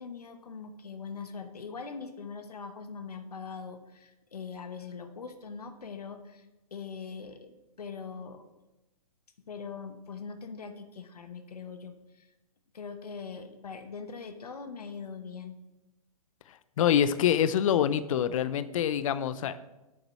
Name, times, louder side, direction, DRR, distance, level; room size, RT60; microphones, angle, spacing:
voice 1, 0.0-6.5 6.7-8.4 9.5-12.3 12.7-15.6, left 5 dB, 85° left, 7 dB, 1.1 m, -42 dB
voice 2, 16.8-19.6, left 9 dB, 60° left, 14 dB, 0.5 m, -25 dB
8.5 x 6.7 x 6.2 m, 1.0 s
hypercardioid pair, 125°, 19 cm